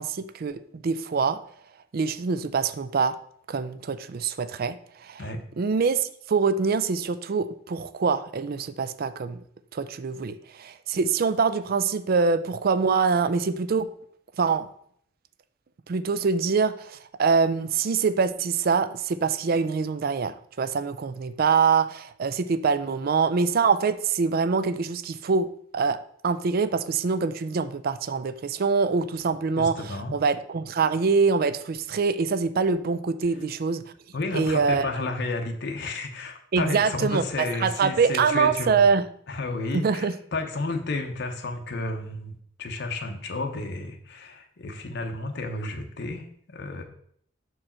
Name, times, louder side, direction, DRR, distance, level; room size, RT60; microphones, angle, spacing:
voice 1, 0.0-1.4 1.9-3.2 3.5-5.2 5.6-9.4 9.7-13.9 14.4-14.7 15.9-26.0 26.2-33.8 34.3-34.9 36.5-39.0 39.7-40.1, right 5 dB, 50° right, 14 dB, 0.4 m, -24 dB
voice 2, 29.6-30.2 34.1-38.9 39.3-46.8, left 2 dB, 60° left, 4 dB, 0.7 m, -32 dB
6.3 x 4.7 x 4.3 m, 0.65 s
head